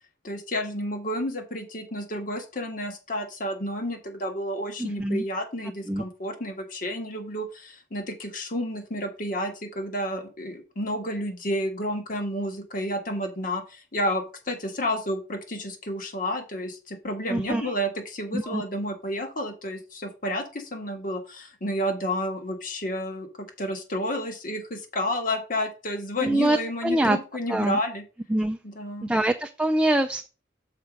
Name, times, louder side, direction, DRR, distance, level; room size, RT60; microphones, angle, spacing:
voice 1, 0.2-23.3 23.6-28.0 28.6-29.1, equal, 45° left, 5 dB, 1.5 m, -31 dB
voice 2, 4.8-5.2 5.9-6.0 17.3-17.7 18.3-18.6 26.2-27.2 27.5-27.8 28.3-28.6 29.0-30.3, right 1 dB, 5° right, 5 dB, 0.4 m, -24 dB
6.7 x 4.4 x 5.2 m, 0.33 s
head